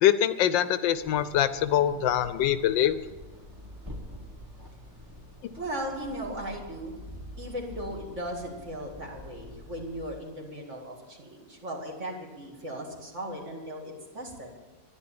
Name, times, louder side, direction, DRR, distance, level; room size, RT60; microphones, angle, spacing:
voice 1, 0.0-3.0, left 11 dB, 80° left, 13 dB, 1.3 m, -24 dB
sound 1, 0.8-10.3, left 1 dB, 10° right, 1.2 m, -46 dB
voice 2, 5.6-14.5, equal, 40° right, -1 dB, 2.6 m, -37 dB
11.5 x 10.5 x 8.7 m, 1.2 s
omnidirectional pair, 2.0 m